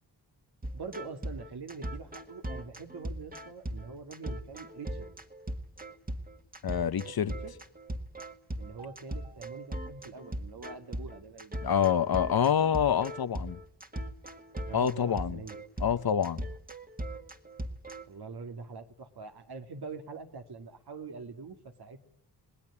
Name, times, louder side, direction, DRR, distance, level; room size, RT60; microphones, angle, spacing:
sound 1, 0.6-18.1, right 1 dB, 20° right, 1.9 m, -39 dB
voice 1, 0.6-5.1 7.1-7.6 8.6-11.6 14.6-15.6 18.1-22.1, right 4 dB, 65° right, 2.3 m, -44 dB
voice 2, 6.6-7.3 11.6-13.6 14.7-15.4 15.8-16.4, left 8 dB, 60° left, 1.0 m, -27 dB
27.5 x 19.5 x 9.8 m
wide cardioid pair, 90°, 41 cm